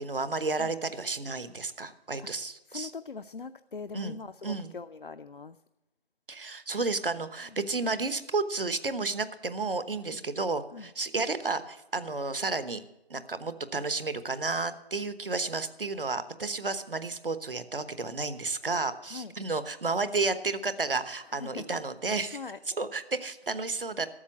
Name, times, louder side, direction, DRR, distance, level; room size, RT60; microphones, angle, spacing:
voice 1, 0.0-2.9 3.9-4.2 4.4-4.7 6.3-12.8 13.1-22.4 22.8-24.1, right 3 dB, 60° right, 12 dB, 1.1 m, -32 dB
voice 2, 2.7-5.5 10.1-10.2 10.7-10.9 19.1-19.3 21.3-21.6 22.3-22.8, left 4 dB, 55° left, 9 dB, 0.5 m, -41 dB
12.5 x 7.0 x 8.3 m, 0.90 s
figure-of-eight pair, 165°, 31 cm